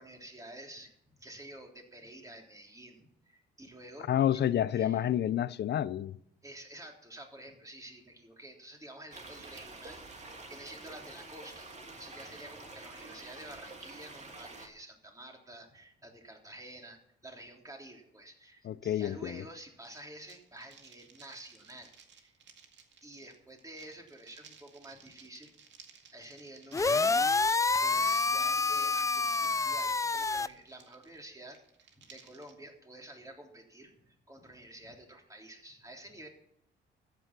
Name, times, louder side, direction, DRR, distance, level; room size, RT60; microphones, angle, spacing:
voice 1, 0.0-4.2 4.7-5.0 6.4-22.3 23.0-25.5 26.1-27.3 27.8-31.6 32.0-36.3, right 1 dB, 15° right, 3.6 m, -50 dB
voice 2, 4.1-6.1 18.6-19.4, left 11 dB, 60° left, 0.6 m, -29 dB
sound 1, 9.1-14.7, right 3 dB, 35° right, 2.9 m, -48 dB
sound 2, 19.8-32.5, right 6 dB, 65° right, 2.1 m, -58 dB
sound 3, 26.7-30.5, left 4 dB, 15° left, 0.4 m, -28 dB
13.5 x 9.3 x 6.1 m
cardioid pair, 90°, 20 cm